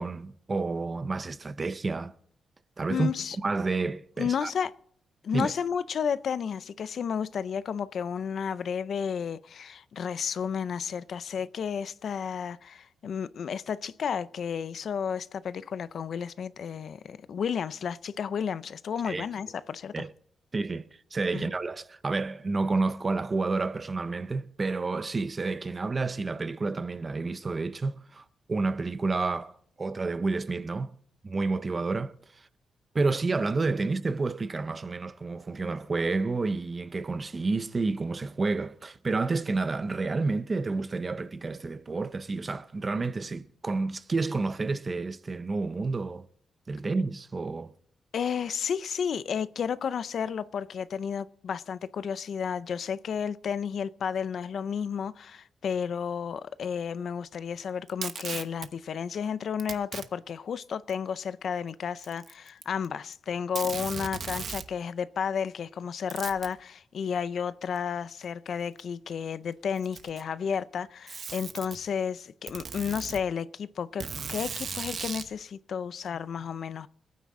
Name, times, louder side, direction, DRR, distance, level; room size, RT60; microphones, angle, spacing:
voice 1, 0.0-2.1 2.8-3.1 3.4-4.5 5.3-5.5 19.1-19.3 19.9-20.1 20.5-20.8 21.1-30.9 31.2-32.5 32.9-46.2 46.7-47.7, right 3 dB, 25° right, 0.5 m, -30 dB
voice 2, 2.9-3.4 4.2-4.7 5.2-20.1 21.3-21.5 48.1-76.9, left 7 dB, 50° left, 0.5 m, -32 dB
Packing tape duct tape, 57.9-58.7 59.6-60.1 60.9-61.0 62.0-62.9 63.1-63.2 63.6-64.7 66.1-66.5 67.8-67.9 68.8-68.9 69.7-70.3 71.1-71.8 72.5-73.2 74.0-75.3, right 6 dB, 45° right, 0.9 m, -37 dB
26.0 x 9.4 x 3.7 m
wide cardioid pair, 180°, 0 cm